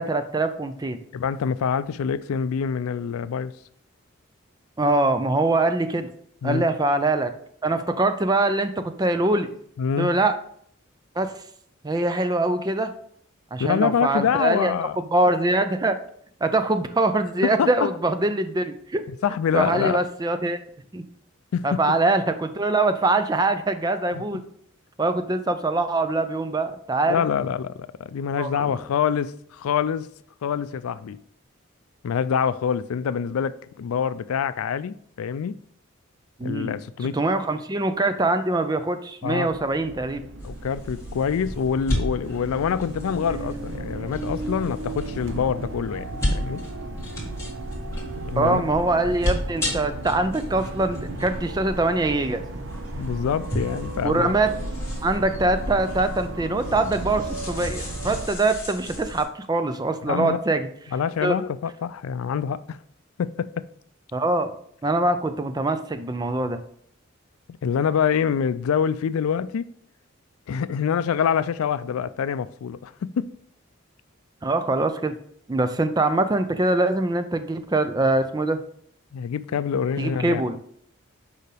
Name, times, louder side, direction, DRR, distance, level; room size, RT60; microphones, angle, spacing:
voice 1, 0.0-1.0 4.8-6.1 6.4-7.3 7.6-9.5 10.0-10.3 11.2-11.4 11.8-12.9 13.5-14.7 15.1-16.0 16.4-19.0 19.5-20.6 20.9-21.0 21.6-24.4 25.0-27.2 28.4-28.8 36.4-40.2 48.4-52.4 54.0-54.5 55.0-60.7 61.2-61.4 64.1-64.5 64.8-66.6 74.4-75.1 75.5-78.6 80.0-80.6, right 2 dB, 20° right, 0.4 m, -23 dB
voice 2, 1.1-3.5 6.4-6.6 9.8-10.2 13.6-15.0 17.4-17.9 19.2-20.0 21.5-22.0 24.1-24.2 27.1-30.1 30.4-31.2 32.0-35.6 36.4-37.2 39.2-39.5 40.4-46.6 48.2-48.6 52.9-54.3 58.0-58.1 60.1-60.4 60.9-62.8 63.2-63.5 67.6-69.7 70.5-73.3 79.1-80.4, left 7 dB, 90° left, 0.4 m, -25 dB
sound 1, 39.5-58.3, right 2 dB, 65° right, 0.8 m, -35 dB
sound 2, 40.4-59.2, left 1 dB, 15° left, 1.9 m, -34 dB
6.7 x 5.0 x 3.4 m
head